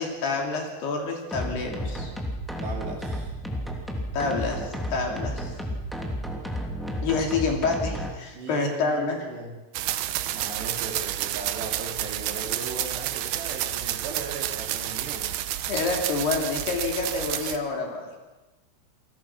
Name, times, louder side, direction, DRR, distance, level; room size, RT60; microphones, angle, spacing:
voice 1, 0.0-2.1 4.1-5.5 7.0-9.2 15.7-18.1, left 4 dB, 55° left, 2 dB, 4.5 m, -28 dB
sound 1, 1.3-8.1, equal, ahead, 0.6 m, -32 dB
voice 2, 2.6-3.3 8.3-9.6 10.3-15.4, right 4 dB, 60° right, 2 dB, 4.6 m, -38 dB
sound 2, 9.7-17.6, right 12 dB, 80° right, 2.2 m, -30 dB
28.5 x 20.0 x 6.0 m, 1.1 s
omnidirectional pair, 5.8 m